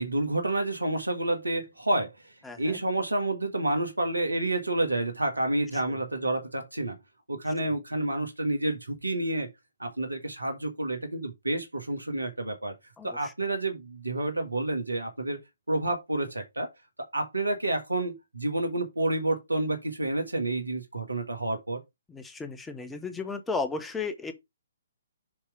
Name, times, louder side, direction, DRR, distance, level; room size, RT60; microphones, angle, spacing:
voice 1, 0.0-2.1 2.6-7.0 7.3-9.5 9.8-12.7 13.0-15.4 15.7-16.7 17.1-21.8, right 2 dB, 85° right, 1.7 m, -29 dB
voice 2, 2.4-2.8 5.7-6.0 13.0-13.3 22.1-24.3, left 4 dB, 10° left, 1.0 m, -35 dB
7.2 x 3.3 x 4.9 m
figure-of-eight pair, 130°, 0 cm